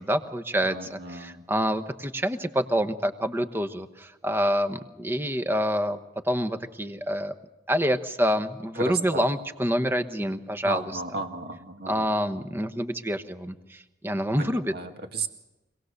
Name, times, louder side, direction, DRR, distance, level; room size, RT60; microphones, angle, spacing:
voice 1, 0.0-7.3 7.7-11.0 11.9-14.7, equal, 10° right, 9 dB, 1.1 m, -27 dB
voice 2, 0.6-1.4 8.8-9.2 10.6-12.1 14.4-15.3, right 3 dB, 55° right, 5 dB, 2.2 m, -34 dB
25.5 x 18.5 x 6.7 m, 1.0 s
head